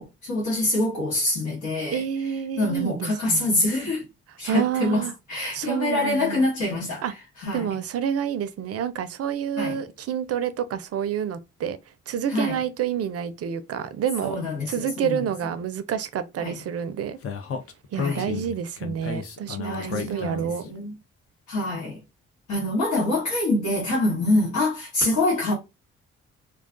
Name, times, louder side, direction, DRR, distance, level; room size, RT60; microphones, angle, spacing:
voice 1, 0.0-2.0 2.6-4.0 4.4-7.0 7.4-7.8 9.6-9.8 12.3-12.6 14.2-15.2 16.4-16.6 17.9-18.3 19.6-20.9 21.5-22.0 22.5-25.5, left 2 dB, 75° left, 1.1 m, -25 dB
voice 2, 1.9-3.5 4.4-5.1 5.5-6.5 7.0-7.1 7.5-11.8 12.1-14.4 14.7-17.2 17.9-20.6, right 8 dB, 55° right, 0.4 m, -28 dB
Speech, 17.2-20.6, left 6 dB, 50° left, 0.6 m, -32 dB
2.3 x 2.2 x 2.4 m
supercardioid pair, 50°, 30 cm